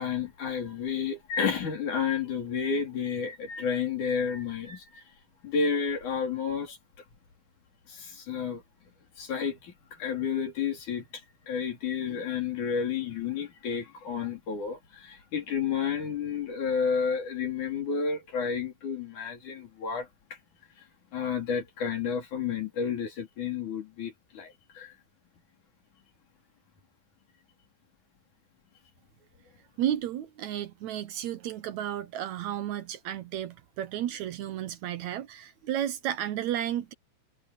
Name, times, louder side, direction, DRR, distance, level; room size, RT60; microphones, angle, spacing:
voice 1, 0.0-5.0 5.4-6.8 7.9-8.6 9.2-20.4 21.1-25.0, left 6 dB, 70° left, 5.2 m, -31 dB
voice 2, 29.8-36.9, right 11 dB, 70° right, 2.0 m, -32 dB
omnidirectional pair, 3.7 m